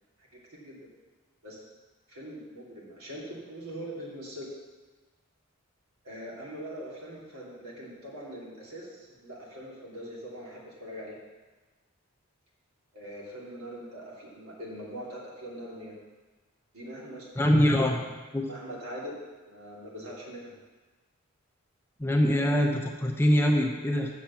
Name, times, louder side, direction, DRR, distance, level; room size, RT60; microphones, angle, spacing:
voice 1, 0.3-0.8 1.4-1.6 2.1-4.5 6.0-11.2 12.9-15.9 16.7-17.3 17.6-18.0 18.4-19.1 19.4-20.5 22.3-22.6, equal, 80° right, -5 dB, 2.8 m, -42 dB
voice 2, 17.4-18.0 18.3-18.4 22.0-24.1, equal, 10° left, 2 dB, 0.6 m, -23 dB
7.4 x 6.6 x 7.1 m, 1.3 s
head